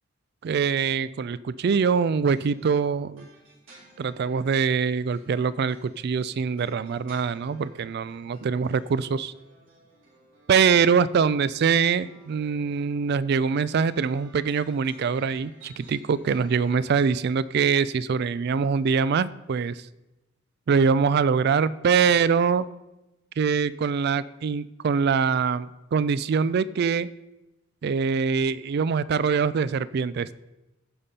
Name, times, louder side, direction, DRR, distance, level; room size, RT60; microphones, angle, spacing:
voice 1, 0.4-3.3 4.0-9.3 10.5-19.8 20.7-22.7 23.4-27.1 27.8-30.4, right 6 dB, 50° right, 17 dB, 0.3 m, -23 dB
sound 1, 1.6-17.1, right 2 dB, 75° right, 3.7 m, -55 dB
15.0 x 5.2 x 4.2 m, 0.98 s
head